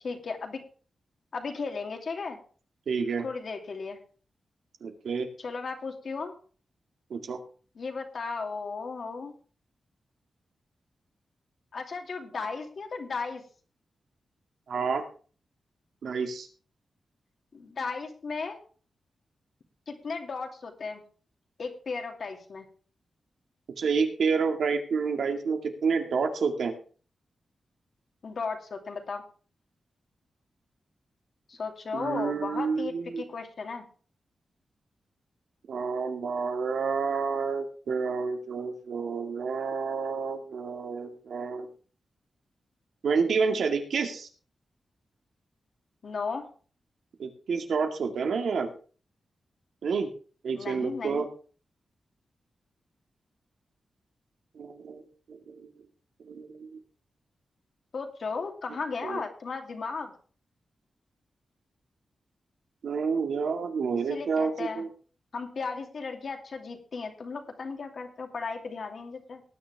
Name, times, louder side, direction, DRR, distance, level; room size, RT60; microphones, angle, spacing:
voice 1, 0.0-0.6 1.3-2.4 3.2-4.0 5.4-6.3 7.8-9.3 11.7-13.4 17.5-18.6 19.9-21.0 21.6-22.7 28.2-29.2 31.5-33.8 46.0-46.5 50.5-51.3 57.9-60.1 64.1-64.8 65.3-69.4, left 4 dB, 55° left, 3 dB, 2.6 m, -35 dB
voice 2, 2.9-3.3 4.8-5.3 7.1-7.4 14.7-15.0 16.0-16.5 23.8-26.7 31.9-33.2 35.7-41.7 43.0-44.3 47.2-48.7 49.8-50.1 50.4-51.3 54.6-55.7 56.3-56.7 59.0-59.2 62.8-64.9, right 5 dB, 80° right, 4 dB, 2.2 m, -29 dB
19.0 x 9.6 x 3.6 m, 0.40 s
wide cardioid pair, 135°, 0 cm